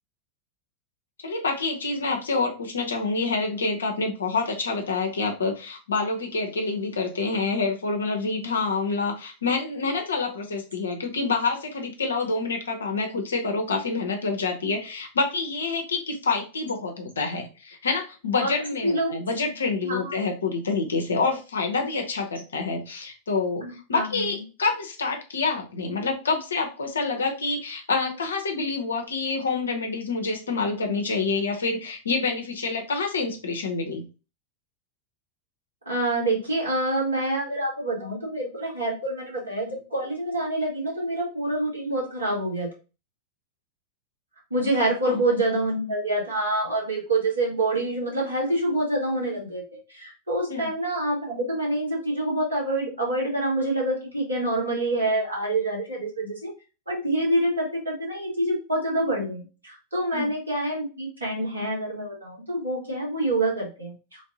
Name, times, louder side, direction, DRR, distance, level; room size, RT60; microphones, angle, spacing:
voice 1, 1.2-34.0 45.0-45.2 50.5-50.7 60.1-60.3, left 4 dB, 70° left, 3 dB, 0.6 m, -27 dB
voice 2, 18.8-19.2 19.8-20.1 23.6-24.3 35.9-42.7 44.5-49.6 49.9-56.5 56.9-63.9, right 1 dB, 80° right, -4 dB, 1.9 m, -26 dB
3.2 x 2.6 x 3.9 m, 0.33 s
figure-of-eight pair, 90°, 0 cm